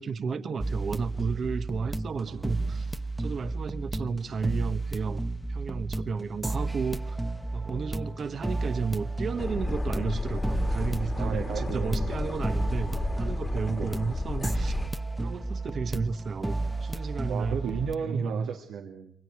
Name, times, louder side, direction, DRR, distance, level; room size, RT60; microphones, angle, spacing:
voice 1, 0.0-2.9 3.2-5.2 5.5-7.2 7.5-14.8 15.2-17.6 18.0-18.5, right 5 dB, 50° right, 1.2 m, -33 dB
sound 1, 0.6-17.9, right 2 dB, 10° right, 1.0 m, -32 dB
voice 2, 2.3-2.9 11.2-12.1 13.7-13.9 17.3-19.1, right 7 dB, 85° right, 2.2 m, -34 dB
sound 2, 9.4-14.9, left 2 dB, 25° left, 1.8 m, -32 dB
27.5 x 23.5 x 4.7 m
cardioid pair, 90°, 0 cm